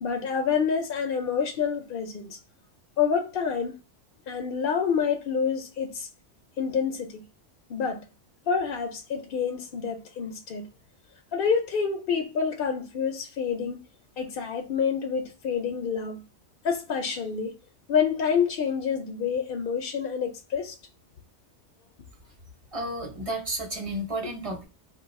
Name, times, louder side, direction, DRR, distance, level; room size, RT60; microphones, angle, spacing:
voice 1, 0.0-2.4 3.0-3.8 4.3-6.1 6.6-7.2 7.7-8.0 8.5-10.7 11.3-13.8 14.2-16.2 16.6-17.5 17.9-20.8, left 6 dB, 60° left, 0.6 m, -27 dB
voice 2, 22.7-24.6, right 1 dB, 35° right, 0.8 m, -32 dB
2.6 x 2.3 x 4.0 m
omnidirectional pair, 1.2 m